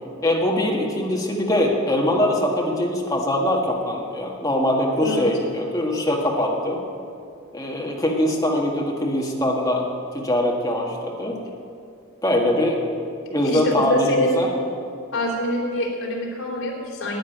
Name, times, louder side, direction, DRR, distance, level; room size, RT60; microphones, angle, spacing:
voice 1, 0.2-6.8 7.5-9.9 10.1-11.4 12.2-12.9 13.3-14.5, left 1 dB, 15° left, -1 dB, 1.8 m, -22 dB
voice 2, 13.4-14.4 15.1-17.2, left 1 dB, 70° left, -2 dB, 3.4 m, -25 dB
11.0 x 9.3 x 9.2 m, 2.4 s
head